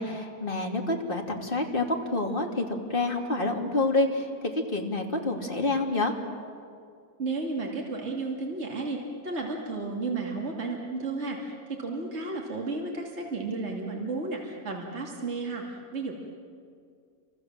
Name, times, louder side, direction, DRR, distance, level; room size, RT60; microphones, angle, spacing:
voice 1, 0.0-2.6 2.9-6.1, left 2 dB, 35° left, 2 dB, 2.9 m, -28 dB
voice 2, 7.2-16.1, right 3 dB, 45° right, -1 dB, 3.0 m, -33 dB
30.0 x 25.5 x 7.5 m, 2.3 s
omnidirectional pair, 1.6 m